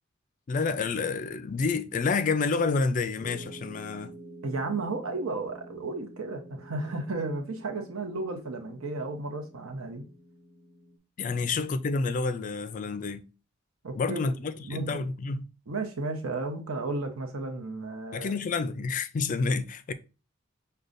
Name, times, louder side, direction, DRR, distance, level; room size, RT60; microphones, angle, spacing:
voice 1, 0.5-4.1 11.2-13.2 13.9-15.4 18.1-19.9, left 4 dB, 35° left, 0.3 m, -29 dB
sound 1, 3.2-11.0, right 1 dB, 10° right, 0.9 m, -49 dB
voice 2, 4.4-10.0 11.2-11.5 13.8-14.3 14.6-15.1 15.7-18.4, right 3 dB, 85° right, 0.8 m, -34 dB
6.5 x 2.2 x 2.5 m
head